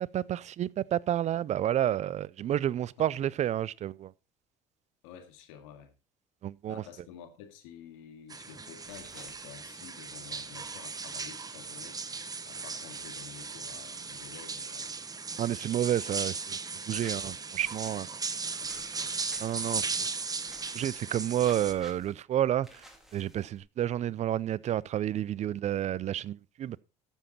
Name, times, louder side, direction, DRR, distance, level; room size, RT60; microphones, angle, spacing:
voice 1, 0.1-4.1 6.4-6.8 15.4-16.6 16.9-18.1 19.4-20.1 20.7-22.8 23.1-26.8, right 11 dB, 45° right, 0.4 m, -30 dB
voice 2, 5.0-5.9 6.7-12.0 12.5-14.9 18.6-19.2, left 8 dB, 85° left, 2.1 m, -50 dB
sound 1, 8.3-21.7, right 4 dB, 20° right, 1.0 m, -37 dB
sound 2, 8.8-9.4 17.0-18.0 18.6-19.9 20.5-21.2 21.4-22.1 22.6-23.6, equal, ahead, 2.8 m, -54 dB
13.0 x 7.3 x 4.2 m
supercardioid pair, 80°, 16 cm